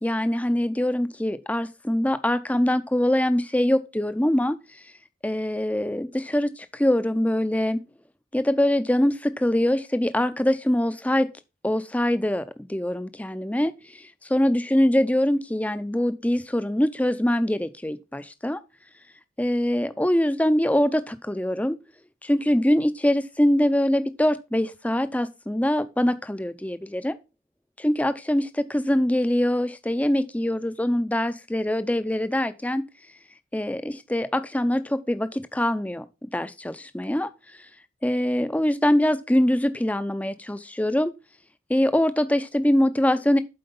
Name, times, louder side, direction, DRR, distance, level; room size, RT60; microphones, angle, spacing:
voice 1, 0.0-4.6 5.2-7.8 8.3-11.3 11.6-18.6 19.4-21.8 22.2-27.2 27.8-32.8 33.5-37.3 38.0-41.1 41.7-43.4, left 1 dB, 5° left, 0.5 m, -23 dB
7.8 x 4.7 x 5.3 m
head